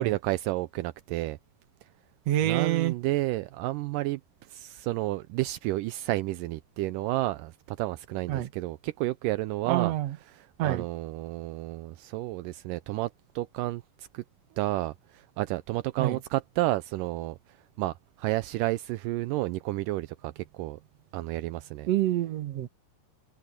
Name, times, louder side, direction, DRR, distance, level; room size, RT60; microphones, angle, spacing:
voice 1, 0.0-1.4 2.4-4.2 4.5-9.9 10.3-14.2 14.6-17.4 17.8-20.8 21.1-21.9, right 17 dB, 85° right, 1.9 m, -31 dB
voice 2, 2.3-2.9 8.3-8.5 9.7-10.2 10.6-10.8 16.0-16.2 21.9-22.7, right 13 dB, 60° right, 1.9 m, -27 dB
open air
omnidirectional pair, 4.3 m